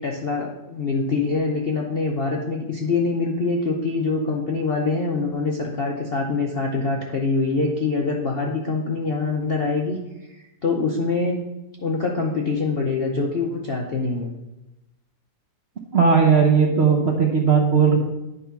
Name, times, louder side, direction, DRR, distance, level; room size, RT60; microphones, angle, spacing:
voice 1, 0.0-10.0 10.3-11.4 11.8-14.3, left 3 dB, 55° left, -1 dB, 0.7 m, -24 dB
voice 2, 15.9-18.0, right 6 dB, 50° right, 0 dB, 0.8 m, -17 dB
9.7 x 3.8 x 5.8 m, 0.98 s
omnidirectional pair, 1.9 m